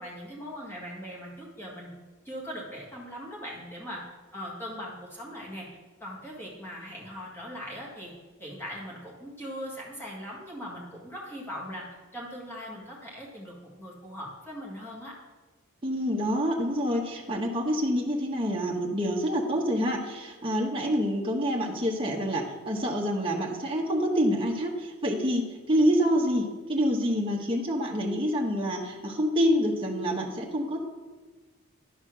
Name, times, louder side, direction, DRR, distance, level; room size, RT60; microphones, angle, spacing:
voice 1, 0.0-1.9 2.3-4.0 4.3-5.7 6.0-8.1 8.4-11.9 12.1-15.1, equal, 10° left, -4 dB, 1.8 m, -40 dB
voice 2, 15.8-30.8, equal, 25° right, -1 dB, 1.0 m, -27 dB
11.0 x 4.2 x 6.1 m, 1.3 s
head